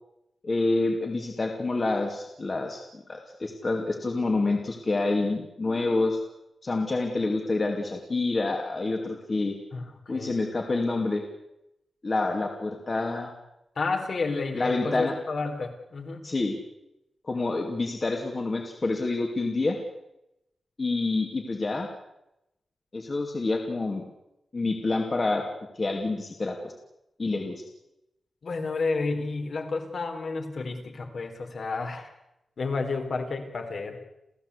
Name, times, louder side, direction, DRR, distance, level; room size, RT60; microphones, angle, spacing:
voice 1, 0.4-6.2 6.6-9.6 10.1-11.2 12.0-13.3 14.5-15.1 16.2-16.6 17.2-19.8 20.8-21.9 22.9-24.0 24.5-25.4 25.7-26.7 27.2-27.6, left 3 dB, 30° left, 2 dB, 2.6 m, -27 dB
voice 2, 9.7-10.4 13.8-16.3 28.4-32.1 32.6-34.0, left 3 dB, 55° left, 5 dB, 3.9 m, -31 dB
30.0 x 15.0 x 8.4 m, 0.88 s
wide cardioid pair, 170°, 0 cm